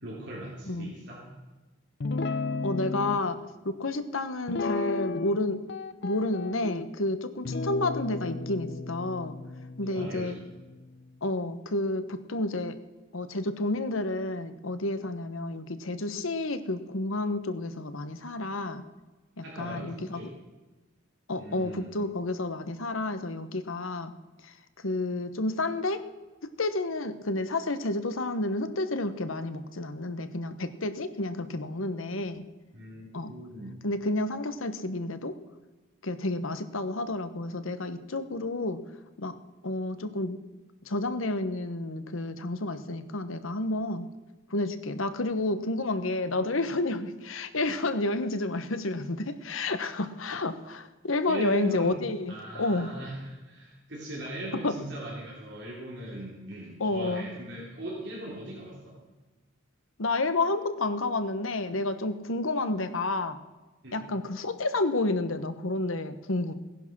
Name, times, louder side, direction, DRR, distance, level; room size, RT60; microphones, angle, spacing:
voice 1, 0.0-1.3 9.8-10.4 19.4-20.3 21.3-21.9 32.7-33.8 51.3-52.0 52.3-59.0 63.8-64.1, right 1 dB, 60° right, -4 dB, 3.3 m, -39 dB
Guitar, 2.0-3.2 4.5-5.4 5.7-6.9 7.5-10.9, left 3 dB, 55° left, 0.6 m, -34 dB
voice 2, 2.6-3.4 3.6-5.6 6.0-9.4 9.8-10.4 11.2-12.7 13.1-18.8 19.4-20.2 21.3-24.1 24.4-24.5 24.8-26.0 26.6-32.4 33.1-33.3 33.8-35.3 36.0-38.8 39.2-39.4 39.6-40.4 40.8-44.1 44.5-52.9 54.5-54.8 56.8-57.3 60.0-63.4 63.9-66.5, left 2 dB, 85° left, 10 dB, 1.1 m, -30 dB
17.5 x 10.5 x 6.1 m, 1.2 s
head